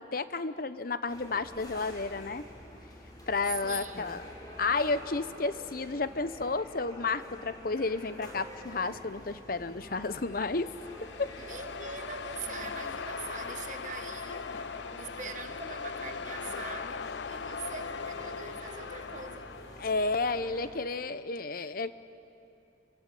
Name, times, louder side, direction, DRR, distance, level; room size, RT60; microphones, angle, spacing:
voice 1, 0.0-2.4 3.3-4.3 4.6-10.7 11.0-11.3 14.5-14.8 19.8-21.9, left 3 dB, 50° left, 0.9 m, -32 dB
sound 1, 1.1-20.7, left 1 dB, 20° left, 5.5 m, -48 dB
voice 2, 3.6-4.3 11.4-14.5 15.0-19.6, right 5 dB, 45° right, 1.1 m, -43 dB
sound 2, 10.2-20.1, left 5 dB, 75° left, 0.6 m, -40 dB
29.5 x 23.5 x 8.4 m
head